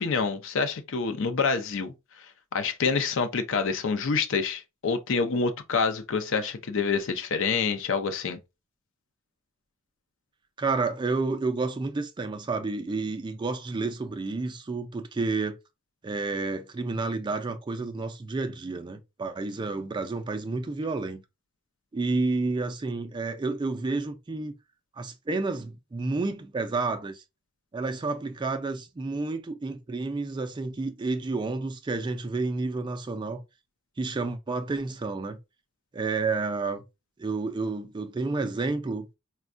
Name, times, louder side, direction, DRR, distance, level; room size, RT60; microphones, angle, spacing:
voice 1, 0.0-1.9 2.5-8.4, left 5 dB, 60° left, 0.5 m, -27 dB
voice 2, 10.6-15.6 16.0-21.2 21.9-24.5 25.0-27.2 27.7-33.4 34.0-35.4 35.9-36.8 37.2-39.1, right 3 dB, 20° right, 0.3 m, -30 dB
4.3 x 2.1 x 2.5 m
head